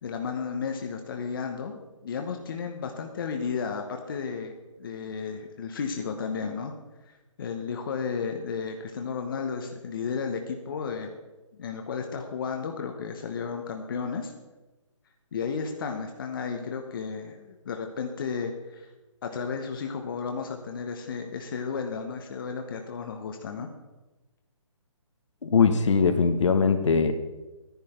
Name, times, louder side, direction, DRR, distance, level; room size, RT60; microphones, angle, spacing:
voice 1, 0.0-4.5 4.8-6.7 7.4-11.2 11.6-14.3 15.3-18.9 19.2-23.7, left 5 dB, 40° left, 4 dB, 1.0 m, -33 dB
voice 2, 25.4-27.1, left 5 dB, 65° left, 7 dB, 1.2 m, -21 dB
10.5 x 10.5 x 4.4 m, 1.1 s
hypercardioid pair, 160°, 17 cm